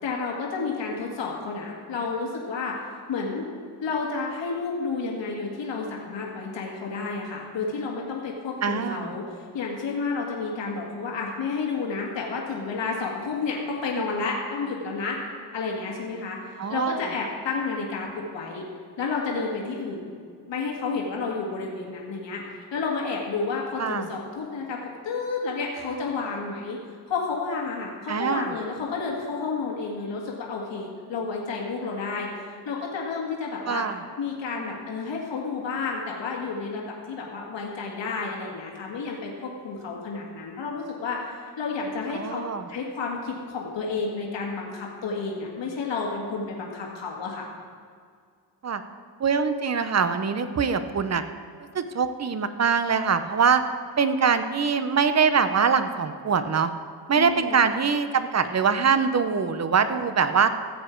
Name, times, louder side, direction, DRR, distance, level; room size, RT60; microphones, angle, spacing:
voice 1, 0.0-2.8 3.1-3.4 3.8-15.2 15.5-18.1 18.3-18.6 19.0-20.1 20.5-22.4 22.7-24.8 25.0-26.8 27.1-33.8 34.2-47.5 57.1-57.6, left 4 dB, 75° left, -2 dB, 2.0 m, -31 dB
voice 2, 8.6-9.1 16.6-17.0 23.8-24.1 28.1-28.5 33.7-34.0 42.1-42.7 48.6-48.8 49.2-51.2 51.7-53.6 54.0-56.7 57.1-60.5, right 6 dB, 35° right, 10 dB, 0.8 m, -23 dB
15.5 x 7.9 x 4.5 m, 2.1 s
cardioid pair, 95°, 44 cm